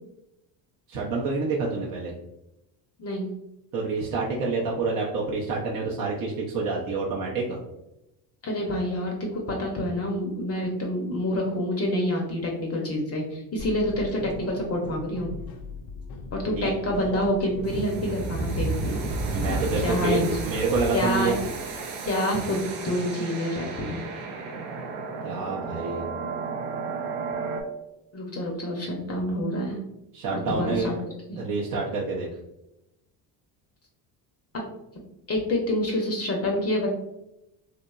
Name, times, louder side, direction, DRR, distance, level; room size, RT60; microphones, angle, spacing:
voice 1, 0.9-2.1 3.7-7.6 16.6-16.7 19.3-21.3 25.2-26.0 30.1-30.9 31.4-32.3, right 4 dB, 45° right, -4 dB, 0.6 m, -27 dB
voice 2, 8.4-15.4 16.3-19.0 19.8-20.3 20.9-21.3 22.0-24.0 28.1-29.8 30.3-30.9 31.3-31.4 35.3-36.9, left 1 dB, 30° left, 0 dB, 0.6 m, -27 dB
sound 1, 13.6-20.2, left 4 dB, 75° left, 0.5 m, -41 dB
sound 2, 17.6-27.6, right 3 dB, 90° right, 0.6 m, -32 dB
2.8 x 2.1 x 2.3 m, 0.88 s
supercardioid pair, 75°, 47 cm